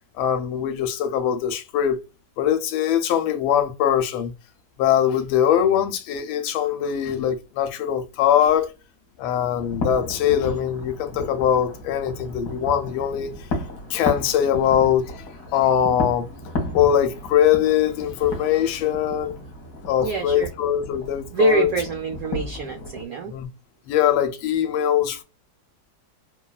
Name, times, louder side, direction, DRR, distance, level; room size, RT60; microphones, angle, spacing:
voice 1, 0.2-2.0 2.4-4.3 4.8-8.7 9.2-13.3 13.9-15.3 15.5-16.3 16.7-19.4 19.9-21.7 23.3-23.5 23.9-25.2, left 9 dB, 90° left, 1.3 m, -22 dB
sound 1, 9.5-23.0, left 1 dB, 55° left, 1.2 m, -34 dB
voice 2, 20.0-20.5 21.3-23.3, right 4 dB, 85° right, 0.7 m, -25 dB
3.2 x 2.2 x 2.2 m
omnidirectional pair, 2.1 m